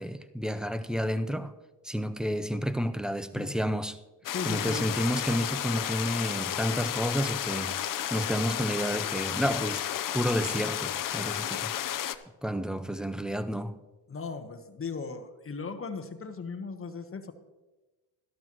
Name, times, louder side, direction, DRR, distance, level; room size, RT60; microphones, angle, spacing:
voice 1, 0.0-1.5 1.9-4.0 4.5-7.8 8.1-9.8 10.1-11.7 12.4-13.7, equal, ahead, 0.5 m, -30 dB
sound 1, 4.2-12.1, left 11 dB, 45° left, 0.7 m, -32 dB
voice 2, 4.3-4.9 14.1-17.3, left 4 dB, 30° left, 1.2 m, -37 dB
12.5 x 12.0 x 3.0 m
supercardioid pair, 70°, 47 cm